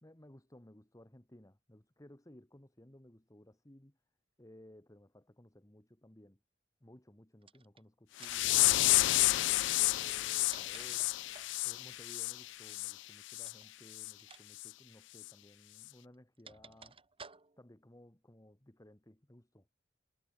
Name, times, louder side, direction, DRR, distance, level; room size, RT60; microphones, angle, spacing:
voice 1, 0.0-4.0 4.4-6.4 6.8-8.7 9.2-11.1 11.6-17.0 17.6-19.7, left 1 dB, 20° left, 1.6 m, -58 dB
sound 1, 7.4-7.8 8.2-8.6 10.1-11.6 13.4-13.7 14.2-14.4 14.7-14.8 15.8-17.7, right 5 dB, 30° right, 3.1 m, -55 dB
sound 2, 8.2-12.9 13.3-13.5 14.0-14.1 14.6-14.7 15.2-15.3, left 18 dB, 70° left, 0.3 m, -30 dB
head